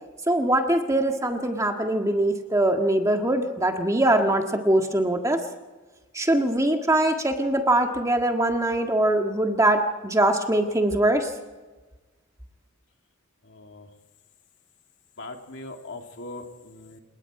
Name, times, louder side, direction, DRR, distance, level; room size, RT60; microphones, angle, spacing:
voice 1, 0.3-5.4 6.1-11.3, right 1 dB, 15° right, 4 dB, 1.7 m, -22 dB
voice 2, 15.2-17.0, left 2 dB, 60° left, 3 dB, 2.6 m, -40 dB
30.0 x 19.0 x 4.9 m, 1.2 s
head